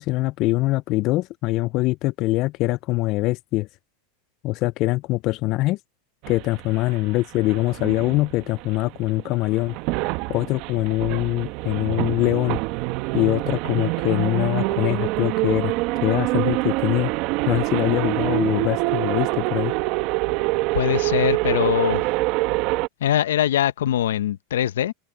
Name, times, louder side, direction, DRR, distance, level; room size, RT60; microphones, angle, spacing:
voice 1, 0.0-3.7 4.4-5.8 6.3-9.8 10.3-12.6 13.1-15.7 16.0-17.1 17.5-19.7, left 19 dB, 50° left, 0.4 m, -23 dB
sound 1, 6.2-22.9, right 21 dB, 55° right, 1.1 m, -25 dB
voice 2, 20.7-22.0 23.0-24.9, left 11 dB, 85° left, 0.7 m, -22 dB
open air
supercardioid pair, 115°, 0 cm